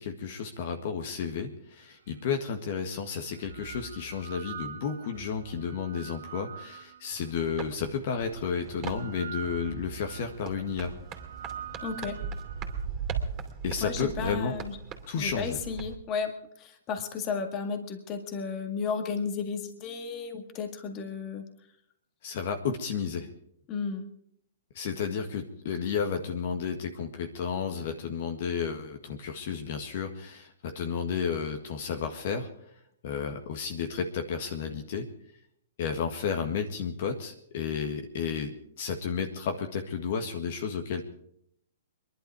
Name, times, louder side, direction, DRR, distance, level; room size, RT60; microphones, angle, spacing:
voice 1, 0.0-10.9 13.6-14.5 15.1-15.6 22.2-23.3 24.7-32.5 33.0-35.1 35.8-41.0, left 6 dB, 55° left, 5 dB, 1.7 m, -32 dB
sound 1, 2.1-2.2 3.1-7.4 8.2-12.8, right 8 dB, 70° right, 1.4 m, -44 dB
sound 2, 7.1-16.0, right 6 dB, 30° right, 2.7 m, -39 dB
voice 2, 11.8-12.1 13.8-14.8 15.2-21.4 23.7-24.1, left 5 dB, 30° left, 6 dB, 1.9 m, -33 dB
22.5 x 11.5 x 4.8 m, 0.70 s
hypercardioid pair, 130°, 0 cm